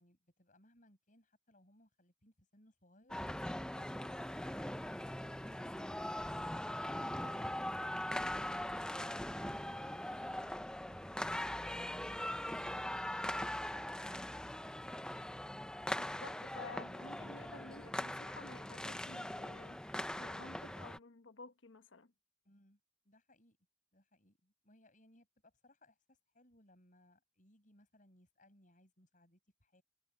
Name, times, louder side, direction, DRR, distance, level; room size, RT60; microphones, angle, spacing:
voice 1, 0.0-6.2 22.4-22.8 23.0-23.6 23.9-29.8, left 1 dB, 40° left, 6.7 m, -67 dB
sound 1, 3.1-21.0, left 1 dB, 5° left, 0.5 m, -41 dB
voice 2, 16.0-22.1, left 3 dB, 75° left, 1.0 m, -53 dB
head